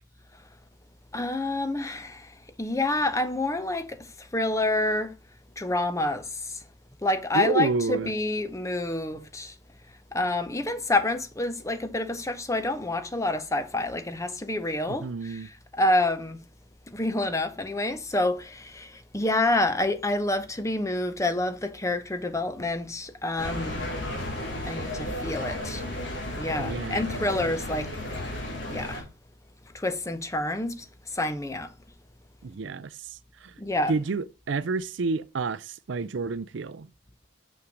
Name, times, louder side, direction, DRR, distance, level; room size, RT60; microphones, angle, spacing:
voice 1, 1.1-5.1 5.6-6.6 7.0-9.6 10.1-16.4 16.9-23.8 24.6-25.8 26.4-28.0 28.7-29.0 29.7-31.7 33.6-34.0, left 2 dB, 15° left, 0.7 m, -28 dB
voice 2, 7.3-8.1 15.0-15.5 26.6-27.2 32.4-32.9 33.4-33.5 33.9-36.9, right 4 dB, 65° right, 0.5 m, -29 dB
sound 1, 23.4-29.0, left 1 dB, 60° left, 3.3 m, -33 dB
6.4 x 5.7 x 5.2 m
head